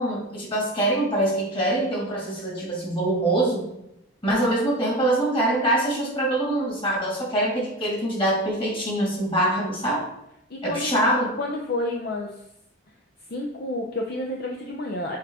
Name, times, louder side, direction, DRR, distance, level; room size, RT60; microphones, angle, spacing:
voice 1, 0.0-3.7 4.2-10.0 10.6-11.3, right 1 dB, 25° left, -3 dB, 2.2 m, -24 dB
voice 2, 10.5-11.0 11.4-12.4 13.3-15.2, left 2 dB, 55° left, 1 dB, 0.6 m, -30 dB
7.1 x 4.8 x 3.6 m, 0.81 s
head